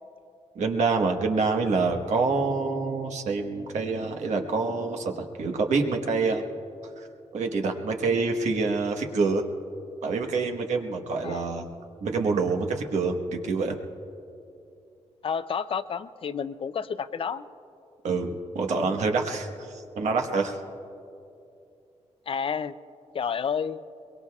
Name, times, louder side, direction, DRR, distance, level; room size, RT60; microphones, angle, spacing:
voice 1, 0.5-6.5 7.0-7.1 7.3-9.4 10.0-11.7 12.0-13.8 18.0-18.3 18.5-20.6, right 4 dB, 85° right, 3 dB, 1.3 m, -26 dB
voice 2, 15.2-17.4 22.3-22.7 23.1-23.8, left 6 dB, 50° left, 13 dB, 0.5 m, -30 dB
23.0 x 22.5 x 2.4 m, 2.7 s
wide cardioid pair, 115°, 12 cm